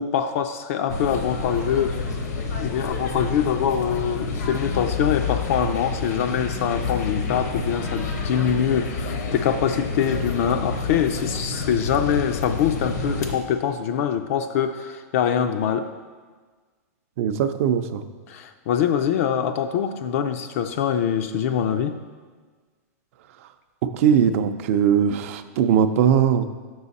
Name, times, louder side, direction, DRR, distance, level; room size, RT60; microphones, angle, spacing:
voice 1, 0.0-2.0 2.6-15.9 18.3-22.0, left 8 dB, 55° left, 7 dB, 0.4 m, -24 dB
sound 1, 0.9-13.4, left 4 dB, 80° left, 0.9 m, -29 dB
voice 2, 17.2-18.0 23.9-26.5, right 8 dB, 55° right, 9 dB, 0.5 m, -20 dB
6.3 x 6.2 x 4.1 m, 1.5 s
supercardioid pair, 150°, 9 cm